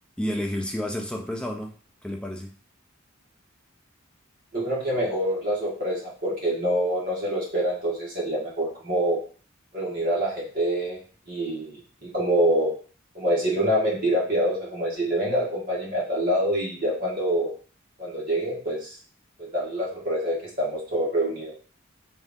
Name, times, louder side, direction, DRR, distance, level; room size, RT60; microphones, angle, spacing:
voice 1, 0.2-1.7 2.0-2.5, equal, 5° left, 2 dB, 0.3 m, -30 dB
voice 2, 4.5-9.2 9.7-11.0 11.3-11.8 12.1-12.7 13.2-17.5 18.0-18.9 19.4-21.5, right 1 dB, 45° right, -6 dB, 1.6 m, -26 dB
3.4 x 2.6 x 3.6 m, 0.41 s
head